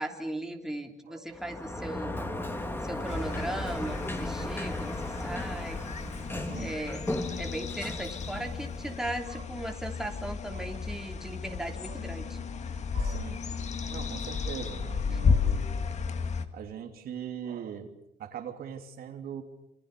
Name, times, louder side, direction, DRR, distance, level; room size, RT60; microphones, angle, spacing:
voice 1, 0.0-2.3 2.8-5.0 5.2-5.8 6.5-7.1 7.4-12.4 15.1-15.2, right 1 dB, 5° right, 3 dB, 3.2 m, -37 dB
Sliding door, 1.3-9.1, left 1 dB, 15° left, 3.0 m, -36 dB
voice 2, 2.3-2.7 6.3-6.7 8.3-8.5 9.3-9.4 10.5-10.7 11.8-12.0 12.9-13.5 13.9-15.7 16.5-17.9 18.2-19.4, right 8 dB, 65° right, 5 dB, 3.1 m, -41 dB
sound 1, 3.1-16.4, left 5 dB, 40° left, 2.0 m, -33 dB
27.5 x 25.0 x 6.9 m, 0.84 s
cardioid pair, 110°, 17 cm